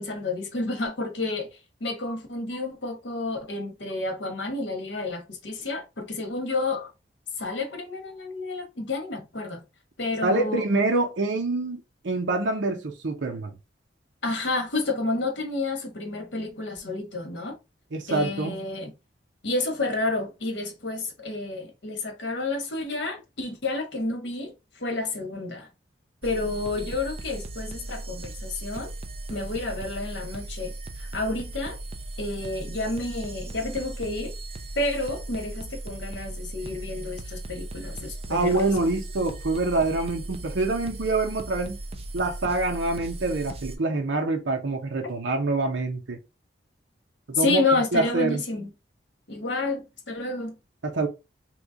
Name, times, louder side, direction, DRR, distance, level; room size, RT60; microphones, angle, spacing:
voice 1, 0.0-1.5 1.8-6.9 7.4-9.6 10.0-10.6 14.2-17.6 18.1-18.9 19.4-25.7 26.2-28.9 29.3-30.7 31.0-31.8 32.2-34.4 34.8-38.7 47.3-48.7 49.3-50.5, left 2 dB, 75° left, 1.0 m, -30 dB
voice 2, 10.2-13.5 17.9-18.5 38.3-41.8 42.1-46.2 47.3-48.4 50.8-51.1, right 2 dB, 80° right, 0.7 m, -26 dB
sound 1, 26.2-43.8, right 2 dB, 30° right, 0.4 m, -37 dB
3.0 x 2.3 x 3.7 m
head